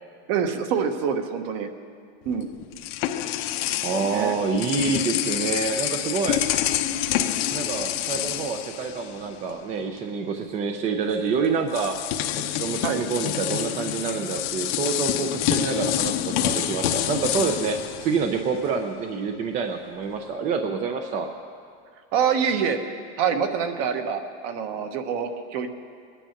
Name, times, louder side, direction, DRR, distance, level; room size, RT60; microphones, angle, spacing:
voice 1, 0.3-1.7 2.2-2.5 3.5-3.6 4.0-4.3 12.8-13.0 22.1-22.8 23.2-25.7, right 7 dB, 50° right, 7 dB, 1.2 m, -26 dB
sound 1, 2.3-9.5 9.8-10.0 11.1-11.2 11.7-18.8, left 12 dB, 60° left, 0.8 m, -27 dB
voice 2, 3.8-6.4 7.5-12.0 12.4-21.3, right 5 dB, 20° right, 5 dB, 0.5 m, -27 dB
22.0 x 9.9 x 5.8 m, 2.3 s
cardioid pair, 180°, 34 cm